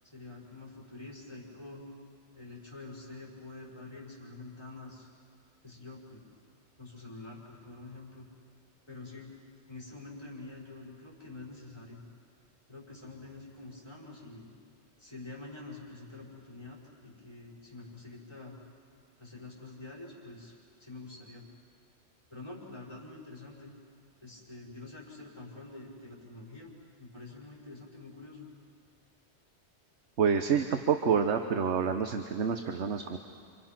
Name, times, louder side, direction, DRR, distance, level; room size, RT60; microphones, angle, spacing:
voice 1, 0.1-1.9 2.3-5.1 5.6-6.4 6.8-8.3 8.9-9.3 9.7-12.0 12.7-14.5 15.0-18.6 19.2-21.4 22.3-23.7 24.2-28.5, left 2 dB, 25° left, -4 dB, 5.5 m, -47 dB
voice 2, 30.2-33.2, right 6 dB, 75° right, 6 dB, 1.3 m, -28 dB
29.5 x 26.5 x 6.0 m, 2.2 s
omnidirectional pair, 1.2 m